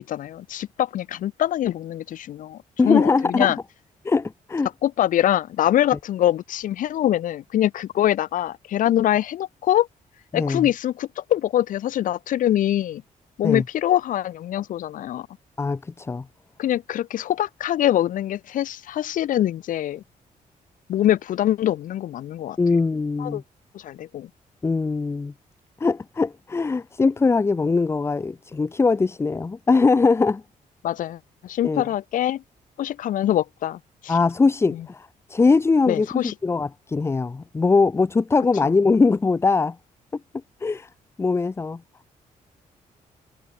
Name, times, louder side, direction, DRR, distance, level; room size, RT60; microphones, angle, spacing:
voice 1, 0.0-2.6 2.8-3.6 4.8-9.9 10.3-13.0 13.4-15.3 16.6-20.0 20.9-22.6 23.2-23.4 23.7-24.3 30.8-32.4 32.8-34.2 34.7-34.9 35.9-36.3 38.6-38.7, left 12 dB, 70° left, 0.8 m, -24 dB
voice 2, 2.8-3.5 4.0-4.7 10.3-10.7 13.4-13.6 15.6-16.3 22.6-23.4 24.6-25.3 25.8-30.4 31.6-31.8 34.1-39.8 40.6-40.9 41.2-41.8, left 4 dB, 20° left, 0.6 m, -21 dB
cardioid pair, 155°, 14 cm